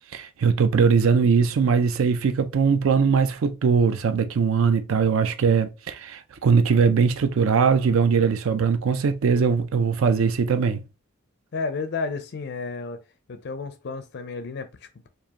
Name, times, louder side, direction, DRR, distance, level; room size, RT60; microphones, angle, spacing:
voice 1, 0.1-10.8, right 5 dB, 65° right, 0.4 m, -21 dB
voice 2, 11.5-13.0 13.3-15.1, left 4 dB, 50° left, 0.4 m, -32 dB
4.6 x 2.5 x 2.8 m
head